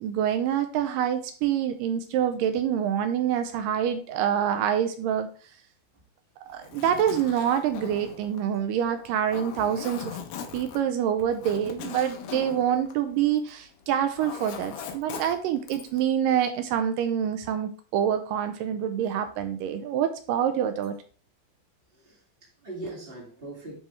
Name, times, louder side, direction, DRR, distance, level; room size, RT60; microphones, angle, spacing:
voice 1, 0.0-5.3 6.5-10.2 10.5-21.0, right 9 dB, 80° right, 2.0 m, -26 dB
Zipper (clothing), 6.5-13.6 13.9-16.0, left 7 dB, 80° left, 2.6 m, -40 dB
voice 2, 21.9-23.8, right 2 dB, 40° right, 0.8 m, -41 dB
10.0 x 3.4 x 3.1 m
omnidirectional pair, 4.3 m